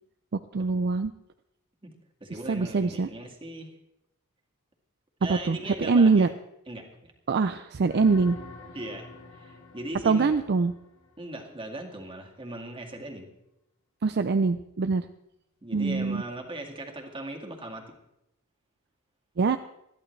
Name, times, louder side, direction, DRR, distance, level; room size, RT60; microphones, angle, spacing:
voice 1, 0.3-1.1 2.5-3.1 5.3-6.3 7.3-8.4 10.0-10.7 14.0-15.1 15.7-16.2 19.4-19.6, right 4 dB, 50° right, 10 dB, 0.5 m, -23 dB
voice 2, 2.2-3.7 5.2-6.3 6.7-7.1 8.7-10.3 11.2-13.3 15.6-17.9, right 1 dB, 25° right, 2 dB, 2.1 m, -39 dB
sound 1, 7.8-11.6 16.2-16.3, left 2 dB, 60° left, 2.8 m, -47 dB
21.0 x 13.5 x 3.3 m, 0.85 s
head